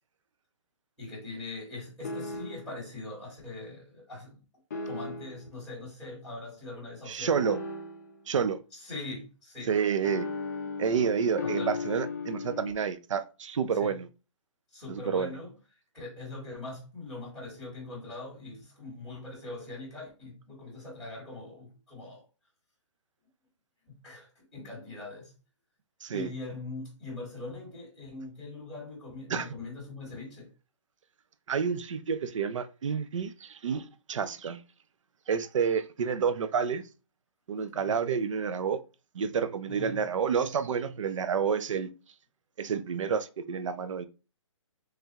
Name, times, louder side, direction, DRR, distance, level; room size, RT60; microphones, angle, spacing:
voice 1, 1.0-4.4 4.8-7.6 8.7-9.7 11.4-11.8 13.8-14.0 14.7-15.5 15.9-22.2 23.9-25.3 26.1-30.5 37.7-38.0 39.6-40.0, left 2 dB, 5° right, 1.0 m, -42 dB
sound 1, 2.0-2.8 4.7-5.5 7.4-8.2 10.0-12.7, left 3 dB, 35° left, 0.5 m, -36 dB
voice 2, 7.1-7.6 8.3-8.6 9.7-10.3 10.8-14.1 14.9-15.3 26.0-26.3 29.3-29.5 31.5-34.6 35.3-36.8 37.5-38.8 39.1-41.9 42.6-44.0, right 6 dB, 75° right, 0.5 m, -29 dB
3.5 x 3.2 x 2.8 m
hypercardioid pair, 175°, 16 cm